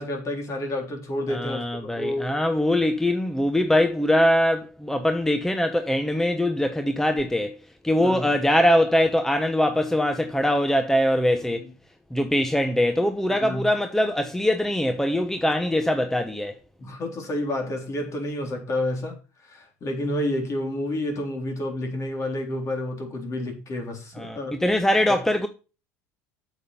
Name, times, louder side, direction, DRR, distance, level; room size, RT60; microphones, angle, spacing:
voice 1, 0.0-2.5 8.0-8.3 11.6-11.7 13.3-13.7 16.8-19.2 19.4-24.6, left 1 dB, 40° left, 3.7 m, -30 dB
voice 2, 1.3-7.5 7.8-11.6 12.1-16.5 24.2-25.5, left 1 dB, 5° left, 0.9 m, -22 dB
8.3 x 7.2 x 5.6 m
hypercardioid pair, 85°, 8 cm